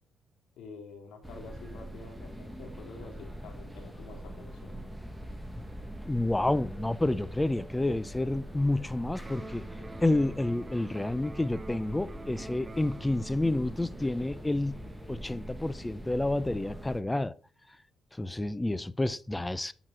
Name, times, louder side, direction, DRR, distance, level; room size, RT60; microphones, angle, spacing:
voice 1, 0.6-4.8, left 4 dB, 80° left, 3.5 m, -48 dB
sound 1, 1.2-17.0, equal, 5° right, 1.6 m, -43 dB
voice 2, 6.0-9.6 10.0-14.8 15.1-17.3 18.1-19.7, left 2 dB, 10° left, 0.6 m, -29 dB
Electric guitar, 9.2-17.2, right 3 dB, 20° right, 1.2 m, -49 dB
11.0 x 6.1 x 4.7 m
cardioid pair, 90°, 0 cm